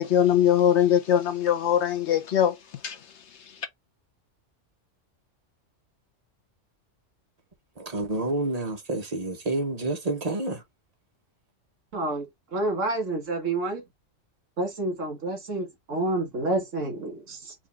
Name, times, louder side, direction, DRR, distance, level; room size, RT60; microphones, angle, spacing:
voice 1, 0.0-2.6 2.8-3.1 3.4-3.5, left 10 dB, 65° left, 1.1 m, -22 dB
voice 2, 7.8-10.6, right 2 dB, 35° right, 1.1 m, -29 dB
voice 3, 11.9-13.8 14.6-17.6, right 2 dB, 80° right, 2.0 m, -29 dB
4.9 x 2.6 x 3.4 m
omnidirectional pair, 1.3 m